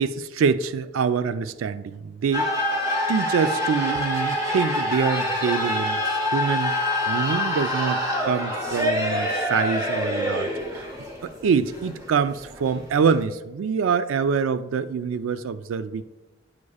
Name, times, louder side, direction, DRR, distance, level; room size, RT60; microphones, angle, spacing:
voice 1, 0.0-2.5 3.1-6.0 6.3-6.8 7.1-10.9 11.2-16.0, right 6 dB, 90° right, 13 dB, 0.3 m, -25 dB
sound 1, 2.3-13.2, left 1 dB, 15° right, 0.8 m, -26 dB
9.5 x 4.8 x 2.3 m, 1.1 s
head